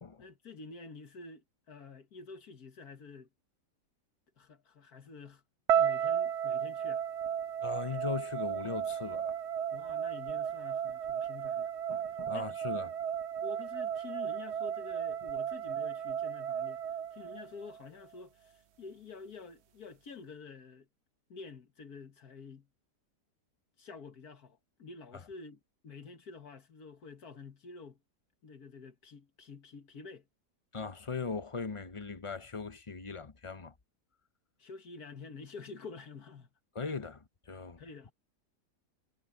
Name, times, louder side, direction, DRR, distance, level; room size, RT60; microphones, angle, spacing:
voice 1, 0.2-3.3 4.4-5.4 5.7-7.0 9.7-11.7 12.3-12.9 13.4-20.9 21.3-22.7 23.8-28.0 28.4-30.3 34.6-36.5 37.8-38.1, left 4 dB, 65° left, 2.0 m, -49 dB
sound 1, 5.7-17.8, right 8 dB, 55° right, 0.7 m, -34 dB
voice 2, 7.6-9.4 11.9-12.9 30.7-33.7 36.7-37.8, left 5 dB, 35° left, 0.5 m, -39 dB
omnidirectional pair, 1.8 m